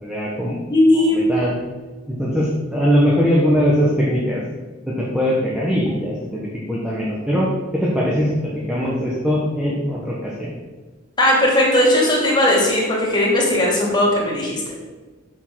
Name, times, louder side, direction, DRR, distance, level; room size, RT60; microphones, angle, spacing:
voice 1, 0.0-0.6 0.9-1.5 2.1-4.4 4.9-10.5, equal, 5° right, -5 dB, 1.5 m, -21 dB
voice 2, 0.7-1.2 11.2-14.6, left 1 dB, 20° left, -4 dB, 2.9 m, -17 dB
7.1 x 6.6 x 6.4 m, 1.2 s
head